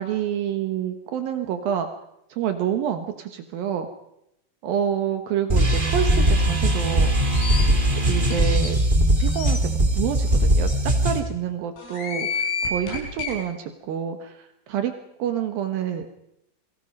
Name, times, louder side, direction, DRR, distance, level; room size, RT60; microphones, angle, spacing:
voice 1, 0.0-1.9 2.3-3.9 4.6-7.3 8.1-8.8 9.2-14.9 15.2-16.1, right 9 dB, 80° right, 8 dB, 2.0 m, -28 dB
sound 1, 5.5-11.2, right 1 dB, 35° right, 0.7 m, -20 dB
sound 2, 7.1-7.6 8.2-8.3 8.6-8.7 9.2-9.6 10.3-10.4 10.7-10.8 11.8-13.3, left 5 dB, 90° left, 9.3 m, -30 dB
29.5 x 23.5 x 5.4 m, 0.79 s
omnidirectional pair, 6.0 m